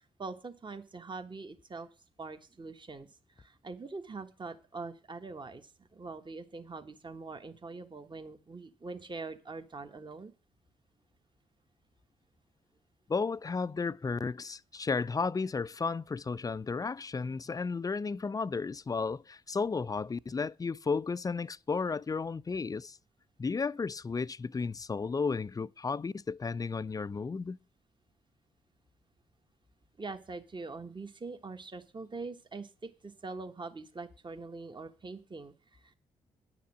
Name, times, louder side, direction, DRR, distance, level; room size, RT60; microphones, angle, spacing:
voice 1, 0.0-1.9 2.2-3.1 3.4-10.3 30.0-35.9, right 3 dB, 30° right, 1.4 m, -43 dB
voice 2, 13.1-23.0 23.4-27.6, left 4 dB, 25° left, 0.4 m, -33 dB
9.8 x 5.9 x 7.1 m
hypercardioid pair, 45°, 15 cm